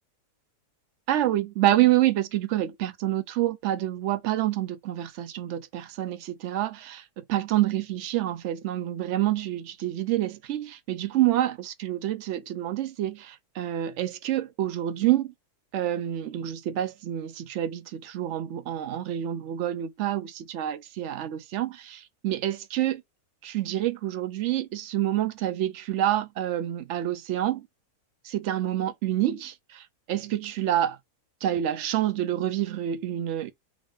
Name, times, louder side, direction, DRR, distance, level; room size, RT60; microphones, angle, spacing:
voice 1, 1.1-15.3 15.7-23.0 23.4-27.7 28.2-31.0 31.4-33.5, right 13 dB, 70° right, 0.7 m, -27 dB
3.7 x 2.6 x 3.3 m
omnidirectional pair, 1.7 m